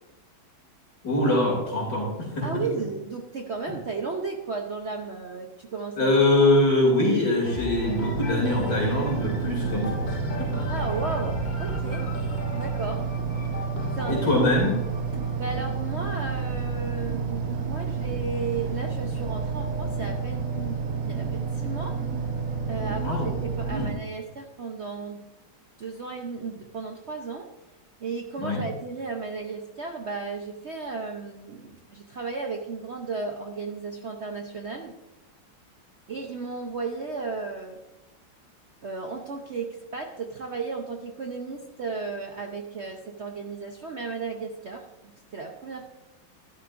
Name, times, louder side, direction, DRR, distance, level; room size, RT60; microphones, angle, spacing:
voice 1, 1.0-2.6 6.0-10.7 14.1-14.7 23.0-23.3 23.7-23.9 28.4-28.6, left 1 dB, 55° left, -2 dB, 3.3 m, -23 dB
voice 2, 2.4-6.1 10.7-12.1 12.5-13.1 13.9-14.4 15.4-20.8 21.0-22.0 22.7-25.3 25.8-27.5 28.0-34.9 36.1-37.8 38.8-45.8, right 4 dB, 65° right, 2 dB, 0.6 m, -34 dB
sound 1, 7.4-17.2 17.9-18.0, left 2 dB, 75° left, 0.4 m, -37 dB
sound 2, 7.8-23.9, right 5 dB, 45° right, 1.3 m, -30 dB
12.5 x 12.0 x 2.6 m, 1.0 s
omnidirectional pair, 2.3 m